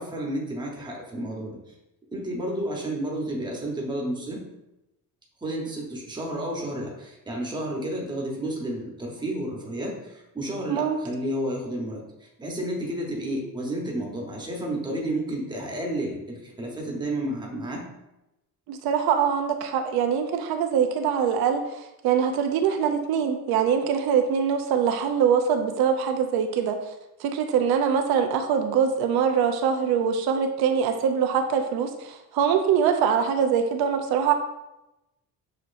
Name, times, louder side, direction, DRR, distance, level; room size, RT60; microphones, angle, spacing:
voice 1, 0.0-1.6 2.1-4.4 5.4-17.8, right 1 dB, 10° right, -2 dB, 0.9 m, -31 dB
voice 2, 18.7-26.9 27.2-34.3, right 7 dB, 90° right, 6 dB, 0.6 m, -23 dB
6.5 x 2.8 x 2.5 m, 0.93 s
cardioid pair, 155°, 36 cm